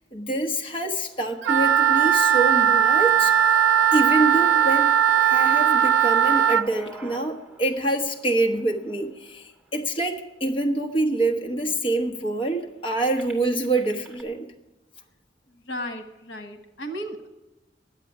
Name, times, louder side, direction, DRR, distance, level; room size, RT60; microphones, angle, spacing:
voice 1, 0.1-3.6 3.9-4.9 5.2-14.5, right 2 dB, 30° left, 2 dB, 1.2 m, -26 dB
sound 1, 0.8-10.7 11.4-11.5 11.7-14.2, right 2 dB, 5° right, 2.7 m, -48 dB
Wind instrument woodwind instrument, 1.4-6.6, right 9 dB, 85° right, 0.3 m, -19 dB
voice 2, 15.7-17.3, equal, 85° left, 8 dB, 1.3 m, -34 dB
10.5 x 8.4 x 10.0 m, 1.1 s
head